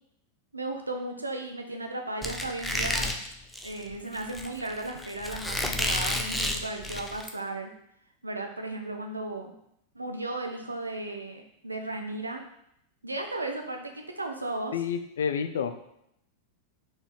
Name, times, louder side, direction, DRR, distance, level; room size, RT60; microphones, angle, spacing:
voice 1, 0.5-3.2 3.6-7.7 8.2-9.5 9.9-12.4 13.0-14.7, right 2 dB, 80° right, 4 dB, 0.8 m, -35 dB
Squeak, 2.2-7.3, left 1 dB, 5° left, 0.6 m, -31 dB
voice 2, 14.7-15.9, left 7 dB, 65° left, 9 dB, 0.5 m, -30 dB
5.0 x 4.2 x 5.0 m, 0.75 s
figure-of-eight pair, 90°, 0 cm